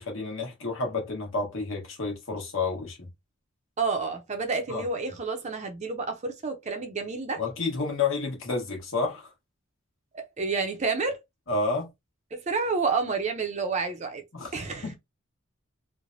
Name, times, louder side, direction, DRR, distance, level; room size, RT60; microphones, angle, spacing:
voice 1, 0.0-3.1 4.7-4.8 7.4-9.3 11.5-11.9 14.3-14.5 14.8-15.0, left 3 dB, 65° left, 1.1 m, -30 dB
voice 2, 3.8-7.4 10.1-11.2 12.3-14.2 14.5-14.9, right 4 dB, 35° right, 0.5 m, -29 dB
3.1 x 2.1 x 2.5 m
head